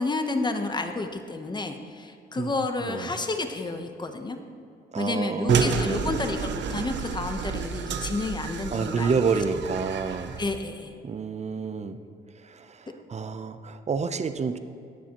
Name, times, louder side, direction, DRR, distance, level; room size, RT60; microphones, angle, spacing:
voice 1, 0.0-4.4 5.0-9.1 10.4-10.9, left 3 dB, 20° left, 6 dB, 1.0 m, -30 dB
voice 2, 2.8-3.2 4.9-6.2 8.7-10.4 11.0-12.0 12.3-14.6, right 5 dB, 35° right, 10 dB, 0.7 m, -29 dB
sound 1, 5.5-10.6, right 6 dB, 70° right, 0.7 m, -29 dB
19.5 x 7.1 x 3.0 m, 2.5 s
cardioid pair, 85°, 19 cm